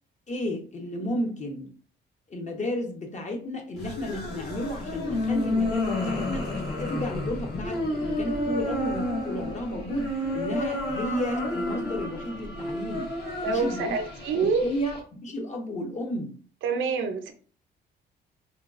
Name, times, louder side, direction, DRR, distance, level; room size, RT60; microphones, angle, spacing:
voice 1, 0.3-1.7 2.3-6.5 6.8-13.1 13.5-14.0 14.4-16.4, left 1 dB, 35° left, 0.8 m, -33 dB
sound 1, 3.8-15.0, left 1 dB, 60° left, 1.1 m, -30 dB
voice 2, 13.4-14.6 16.6-17.3, right 4 dB, 80° right, 0.5 m, -26 dB
3.6 x 2.2 x 2.4 m
cardioid pair, 90°, 20 cm